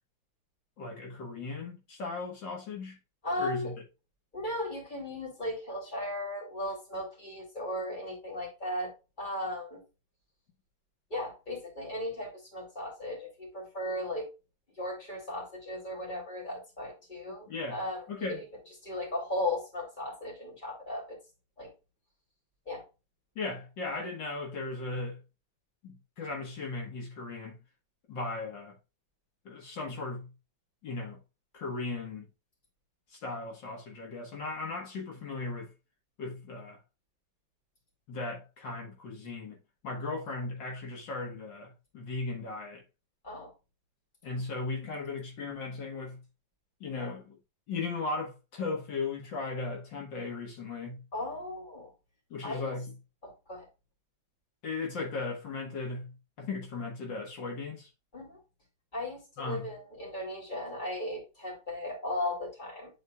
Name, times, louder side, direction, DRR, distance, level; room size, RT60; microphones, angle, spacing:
voice 1, 0.8-3.0 3.4-3.7 17.5-17.8 18.1-18.4 23.4-25.2 25.8-27.6 28.1-28.8 29.5-30.3 30.8-31.2 31.5-32.3 33.1-35.7 36.2-36.8 38.1-39.6 39.8-42.8 44.2-46.2 46.8-47.4 47.7-51.0 52.3-52.9 54.6-57.9 59.4-59.7, left 3 dB, 75° left, 2.2 m, -37 dB
voice 2, 3.2-3.7 4.3-8.9 9.2-9.8 11.1-14.3 14.8-18.4 18.8-21.2 21.6-21.7 22.7-22.8 43.2-43.5 51.1-51.9 52.4-52.7 53.2-53.7 58.1-58.4 58.9-62.9, left 1 dB, 25° left, 2.9 m, -36 dB
10.0 x 4.2 x 2.3 m
omnidirectional pair, 2.1 m